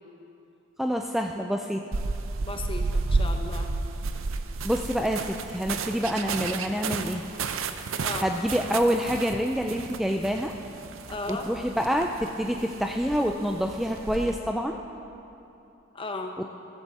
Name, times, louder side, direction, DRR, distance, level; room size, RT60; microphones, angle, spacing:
voice 1, 0.8-1.8 4.6-7.2 8.2-10.5 11.3-14.8 16.4-16.5, equal, ahead, 3 dB, 0.4 m, -27 dB
sound 1, 1.9-14.3, right 3 dB, 75° right, 0.6 m, -32 dB
voice 2, 2.4-3.7 8.0-8.3 11.1-11.5 15.9-16.3, left 2 dB, 25° left, 4 dB, 1.0 m, -35 dB
14.5 x 14.0 x 4.2 m, 2.8 s
head